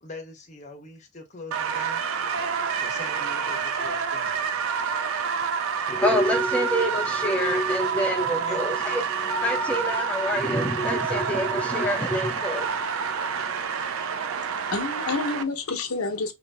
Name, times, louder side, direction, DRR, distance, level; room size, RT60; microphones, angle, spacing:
voice 1, 0.0-2.0 2.8-4.3 8.3-8.6, left 3 dB, 35° left, 0.8 m, -42 dB
sound 1, 1.5-15.4, right 6 dB, 70° right, 0.4 m, -28 dB
voice 2, 5.9-13.6, equal, 5° left, 0.3 m, -27 dB
voice 3, 14.4-16.3, left 3 dB, 90° left, 0.8 m, -29 dB
3.0 x 2.6 x 3.2 m
head